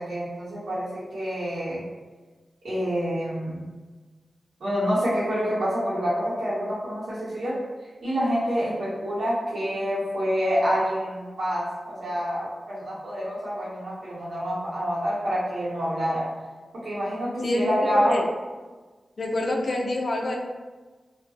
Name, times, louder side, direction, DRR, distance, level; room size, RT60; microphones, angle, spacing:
voice 1, 0.0-1.8 2.6-3.6 4.6-7.6 8.0-16.3 16.8-18.1, equal, 85° right, -9 dB, 1.0 m, -27 dB
voice 2, 17.4-18.2 19.2-20.4, left 1 dB, 60° left, 1 dB, 0.4 m, -26 dB
2.5 x 2.1 x 2.4 m, 1.3 s
cardioid pair, 65°, 0 cm